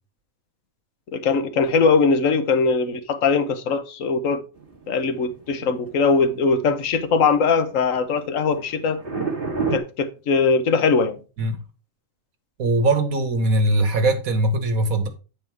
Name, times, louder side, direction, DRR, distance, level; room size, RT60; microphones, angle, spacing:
voice 1, 1.1-4.4 4.9-9.0 9.7-11.2, left 4 dB, 70° left, 1.3 m, -21 dB
sound 1, 4.6-9.8, right 4 dB, 40° right, 1.7 m, -30 dB
voice 2, 12.6-15.1, right 2 dB, 85° right, 1.7 m, -21 dB
9.1 x 4.7 x 4.7 m
omnidirectional pair, 1.4 m